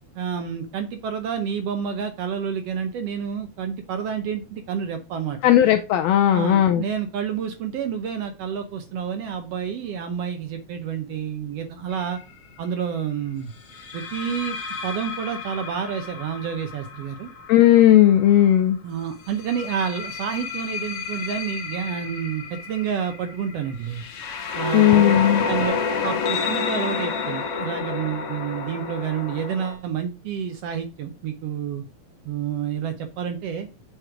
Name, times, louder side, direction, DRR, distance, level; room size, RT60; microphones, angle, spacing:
voice 1, 0.2-5.4 6.3-12.2 12.6-13.5 13.9-14.6 14.8-17.3 18.8-24.0 24.5-25.2 25.4-31.8 32.2-33.7, right 7 dB, 75° right, 1.5 m, -29 dB
voice 2, 5.4-6.8 17.5-18.8 24.7-25.4, left 12 dB, 80° left, 1.5 m, -16 dB
sound 1, 11.9-12.2 13.7-18.5 19.3-29.7, left 5 dB, 65° left, 1.7 m, -30 dB
7.8 x 3.1 x 4.8 m
omnidirectional pair, 3.4 m